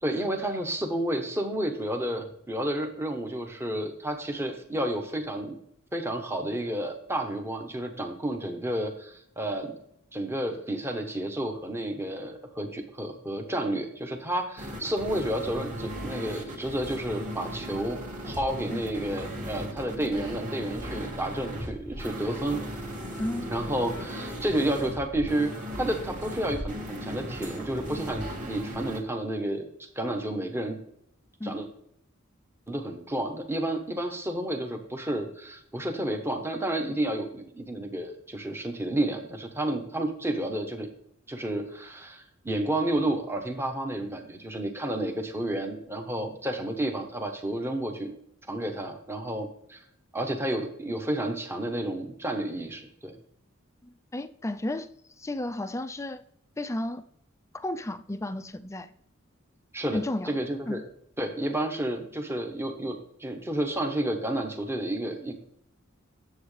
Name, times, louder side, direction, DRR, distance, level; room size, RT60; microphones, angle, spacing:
voice 1, 0.0-5.6 5.9-9.7 10.1-18.0 18.3-22.6 23.5-30.8 31.4-31.7 32.7-40.9 41.3-48.2 48.5-49.8 50.1-53.2 59.7-60.8 61.2-65.3, right 1 dB, 10° right, 1.0 m, -31 dB
sound 1, 14.6-29.0, equal, 35° right, 2.0 m, -37 dB
voice 2, 23.2-23.5 31.4-31.6 53.8-54.9 55.2-56.2 56.6-57.0 57.5-58.9 59.9-60.3 60.7-60.8, left 1 dB, 15° left, 0.4 m, -33 dB
9.5 x 7.4 x 3.3 m
head